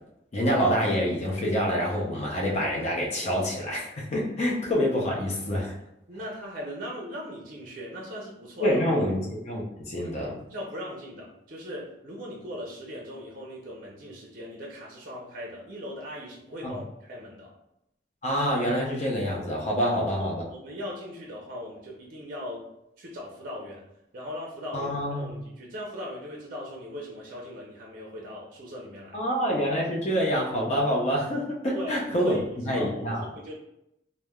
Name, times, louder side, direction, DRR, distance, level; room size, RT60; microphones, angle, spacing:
voice 1, 0.3-5.7 8.6-10.3 16.6-16.8 18.2-20.4 24.7-25.3 29.1-32.4 32.6-33.2, equal, 35° left, -2 dB, 0.5 m, -26 dB
voice 2, 6.1-8.8 10.2-17.5 19.8-22.6 23.0-23.8 24.1-29.2 31.7-33.5, equal, 45° right, -2 dB, 0.5 m, -39 dB
3.1 x 2.1 x 2.2 m, 0.83 s
head